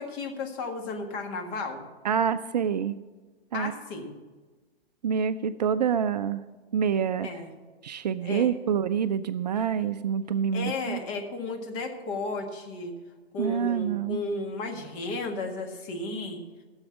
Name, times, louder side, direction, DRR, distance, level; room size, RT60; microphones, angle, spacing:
voice 1, 0.0-1.8 3.5-4.1 7.2-7.5 8.2-8.5 9.5-9.7 10.5-12.9 13.3-16.4, left 3 dB, 30° left, 3 dB, 1.8 m, -34 dB
voice 2, 2.0-3.0 3.5-3.7 5.0-6.4 6.7-7.3 7.8-11.0 13.4-14.2, right 7 dB, 45° right, 12 dB, 0.4 m, -26 dB
14.0 x 7.1 x 7.2 m, 1.3 s
figure-of-eight pair, 115°, 31 cm